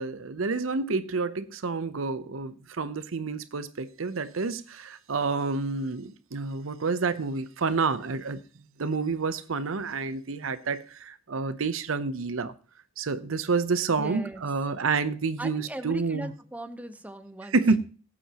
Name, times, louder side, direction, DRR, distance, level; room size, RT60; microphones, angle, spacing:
voice 1, 0.0-8.4 8.8-12.5 13.0-16.3 17.5-17.8, right 4 dB, 85° right, 0.7 m, -29 dB
voice 2, 14.0-14.4 15.4-17.6, right 1 dB, 10° right, 0.8 m, -38 dB
17.5 x 8.5 x 2.9 m
head